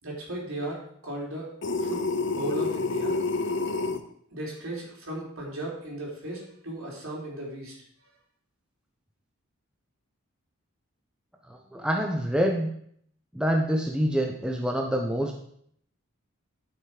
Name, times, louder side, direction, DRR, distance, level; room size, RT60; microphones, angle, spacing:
voice 1, 0.0-1.5 1.8-2.0 2.3-3.2 4.3-7.7, right 1 dB, 70° right, -3 dB, 3.7 m, -36 dB
sound 1, 1.6-4.0, left 3 dB, 55° left, 0.7 m, -28 dB
voice 2, 11.5-12.7 13.3-15.4, equal, 5° right, 1 dB, 0.8 m, -26 dB
12.0 x 5.8 x 4.9 m, 0.66 s
head